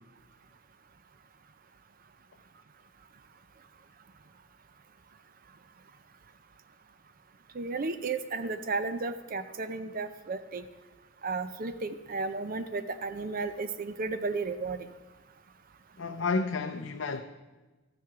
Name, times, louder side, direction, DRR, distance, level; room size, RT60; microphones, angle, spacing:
voice 1, 7.5-10.6 11.2-14.9, right 3 dB, 45° right, 0.5 m, -33 dB
voice 2, 16.0-17.2, left 4 dB, 65° left, 0.5 m, -30 dB
13.5 x 7.5 x 6.0 m
head